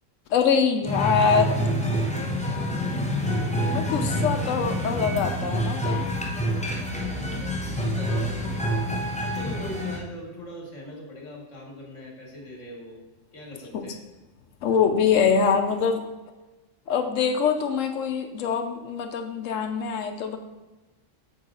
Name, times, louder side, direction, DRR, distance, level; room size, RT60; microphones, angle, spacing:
voice 1, 0.3-1.6 3.7-6.1 13.7-13.9 14.6-16.0 16.9-20.4, left 6 dB, 85° left, 5 dB, 1.1 m, -24 dB
sound 1, 0.8-10.0, equal, 5° left, 0.7 m, -27 dB
voice 2, 7.7-8.7 9.2-13.0 13.3-14.0, left 1 dB, 70° left, -1 dB, 2.0 m, -40 dB
7.8 x 4.6 x 3.8 m, 1.1 s
omnidirectional pair, 1.3 m